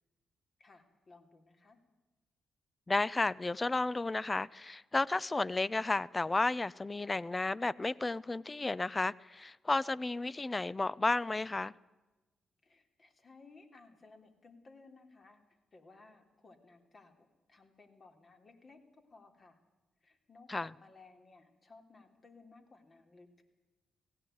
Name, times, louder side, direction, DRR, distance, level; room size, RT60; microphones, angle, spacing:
voice 1, 0.6-1.8 12.6-19.6 20.0-23.4, left 3 dB, 45° left, 3.4 m, -59 dB
voice 2, 2.9-11.7 20.5-20.7, left 2 dB, 25° left, 0.6 m, -32 dB
17.5 x 17.0 x 9.3 m
supercardioid pair, 55°, 0 cm